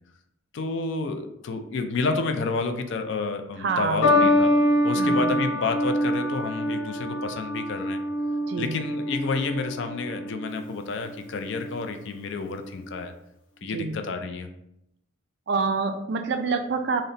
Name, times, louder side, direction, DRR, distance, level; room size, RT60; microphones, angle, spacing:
voice 1, 0.5-4.5 4.8-8.0 8.6-13.1 13.6-14.5, left 4 dB, 60° left, 6 dB, 0.4 m, -30 dB
voice 2, 3.6-4.3 5.0-5.4 8.5-8.8 13.6-14.0 15.5-17.0, right 4 dB, 55° right, 7 dB, 0.3 m, -27 dB
sound 1, 4.0-10.5 11.4-11.8, left 1 dB, 85° left, 1.4 m, -25 dB
4.0 x 2.1 x 3.8 m, 0.81 s
head